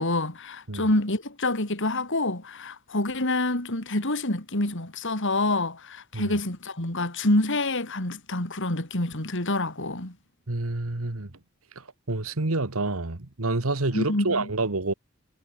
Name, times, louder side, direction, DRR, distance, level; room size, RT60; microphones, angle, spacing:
voice 1, 0.0-10.2 13.9-14.5, left 2 dB, 60° left, 4.3 m, -27 dB
voice 2, 10.5-11.3 12.1-14.9, right 2 dB, 80° right, 1.8 m, -28 dB
head